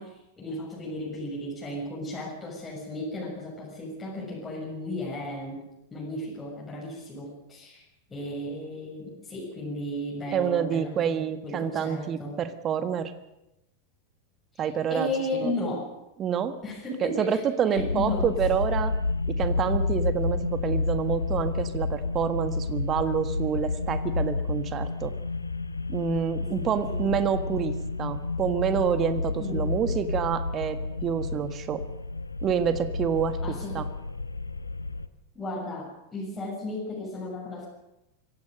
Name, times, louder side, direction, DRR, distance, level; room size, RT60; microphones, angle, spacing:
voice 1, 0.0-7.8 8.1-12.4 14.5-15.9 16.6-17.4 17.7-18.3 19.7-19.9 26.4-27.1 29.4-29.8 33.4-33.9 35.3-37.7, left 1 dB, 15° left, -5 dB, 6.7 m, -35 dB
voice 2, 10.3-13.1 14.6-15.5 16.2-16.6 17.0-18.9 19.3-25.1 25.9-31.8 32.4-33.9, right 8 dB, 30° right, 11 dB, 1.5 m, -28 dB
sound 1, 17.8-35.1, left 3 dB, 80° left, 0.9 m, -30 dB
24.5 x 16.5 x 6.6 m, 0.90 s
figure-of-eight pair, 90°, 0 cm